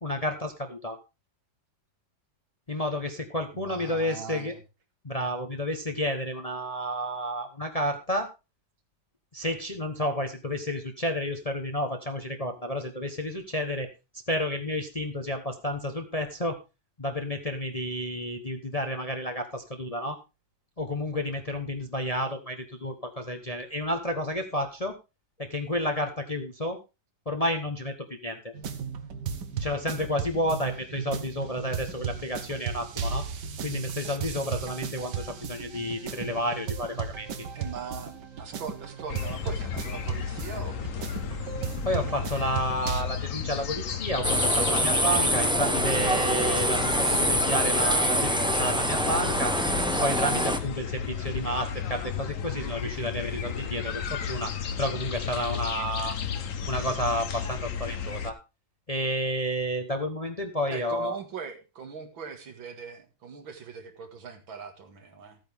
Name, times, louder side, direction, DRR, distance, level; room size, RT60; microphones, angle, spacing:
voice 1, 0.0-1.0 2.7-4.5 5.0-8.3 9.3-13.9 14.3-16.6 17.0-20.2 20.8-24.9 25.4-26.8 27.3-28.5 29.6-33.3 33.6-37.3 41.8-49.5 50.0-56.2 56.7-58.4 58.9-61.2, equal, 25° left, 6 dB, 0.9 m, -31 dB
voice 2, 3.5-4.6 37.5-38.1 38.4-41.3 60.7-65.4, right 5 dB, 85° right, 6 dB, 2.5 m, -41 dB
sound 1, 28.5-43.0, right 6 dB, 65° right, 1.7 m, -35 dB
sound 2, 39.1-58.3, left 7 dB, 55° left, 1.1 m, -33 dB
sound 3, 44.2-50.6, equal, 5° right, 0.4 m, -25 dB
14.0 x 9.0 x 3.5 m, 0.27 s
omnidirectional pair, 2.1 m